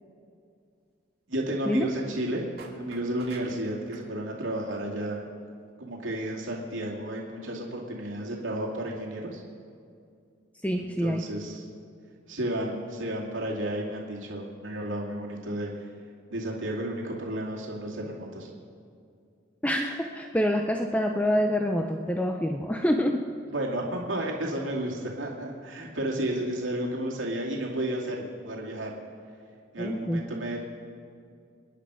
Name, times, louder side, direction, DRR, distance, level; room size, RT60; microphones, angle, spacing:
voice 1, 1.3-2.5 2.8-5.2 5.8-9.4 10.8-11.6 12.3-15.9 16.3-18.5 23.5-28.9 29.7-30.6, right 1 dB, 80° right, -2 dB, 2.5 m, -32 dB
sound 1, 2.6-4.1, right 3 dB, 50° right, 2.4 m, -47 dB
voice 2, 10.6-11.2 19.6-23.2 29.8-30.2, equal, 5° left, 3 dB, 0.6 m, -26 dB
28.0 x 10.0 x 4.9 m, 2.4 s
head